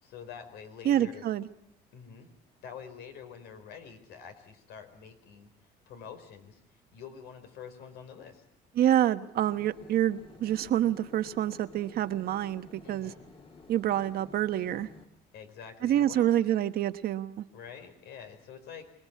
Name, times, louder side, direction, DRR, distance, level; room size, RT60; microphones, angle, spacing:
voice 1, 0.0-1.3 1.9-2.3 2.6-5.5 5.9-8.4 12.8-13.2 15.3-16.5 17.5-18.9, left 7 dB, 80° left, 8 dB, 4.8 m, -47 dB
voice 2, 0.8-1.5 8.8-13.1 13.7-14.9 15.8-17.4, right 11 dB, 65° right, 10 dB, 1.2 m, -27 dB
sound 1, 9.3-15.1, left 3 dB, 35° left, 2.7 m, -53 dB
26.0 x 19.5 x 8.4 m, 0.72 s
cardioid pair, 110°, 17 cm